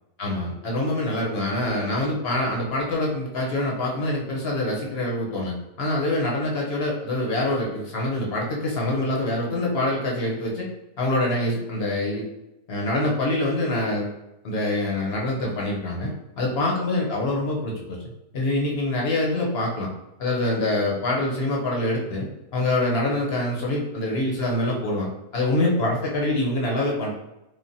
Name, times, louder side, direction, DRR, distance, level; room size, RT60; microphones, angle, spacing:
voice 1, 0.2-10.7 11.0-12.3 12.7-14.1 14.4-19.9 20.2-22.3 22.5-27.1, left 1 dB, 60° left, -2 dB, 0.7 m, -25 dB
3.2 x 2.1 x 2.6 m, 0.92 s
omnidirectional pair, 1.6 m